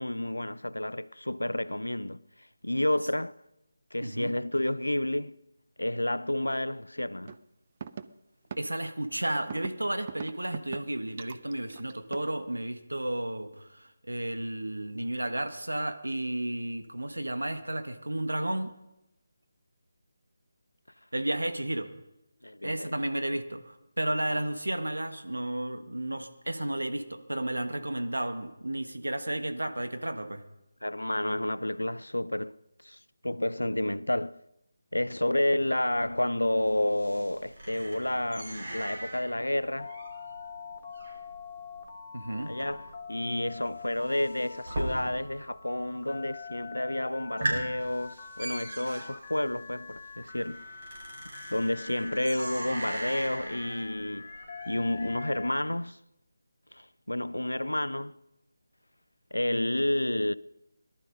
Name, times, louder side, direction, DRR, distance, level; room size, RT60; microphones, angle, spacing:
voice 1, 0.0-3.3 3.9-5.4 5.8-7.4 22.4-22.9 30.8-32.6 32.8-34.4 34.9-39.9 42.5-50.7 51.5-54.3 54.7-56.0 56.7-58.1 59.3-60.3, left 1 dB, 80° left, 0.5 m, -30 dB
voice 2, 4.0-4.3 8.6-18.7 21.1-21.9 22.6-30.4 42.1-42.5, right 1 dB, 80° right, 1.5 m, -32 dB
sound 1, 7.3-7.4 7.8-8.0 8.5-8.6 9.5-9.7 10.1-10.8 11.2-12.3, right 7 dB, 35° right, 0.6 m, -39 dB
sound 2, 35.9-45.5 45.7-46.3 46.7-46.8 47.2-55.5, right 1 dB, 50° right, 5.0 m, -40 dB
Telephone, 39.8-55.5, left 6 dB, 30° left, 1.8 m, -44 dB
18.0 x 12.0 x 5.3 m
figure-of-eight pair, 155°, 0 cm